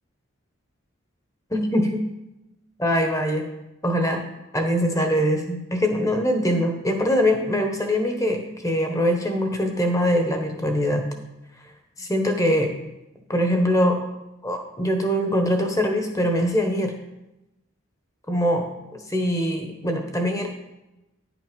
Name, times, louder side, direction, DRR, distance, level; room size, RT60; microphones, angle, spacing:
voice 1, 1.5-2.0 2.8-3.4 3.8-4.2 4.5-11.1 12.0-12.7 13.3-14.0 14.4-16.9 18.3-18.7 18.9-20.5, equal, 15° left, 4 dB, 1.1 m, -23 dB
10.0 x 6.1 x 5.2 m, 0.95 s
head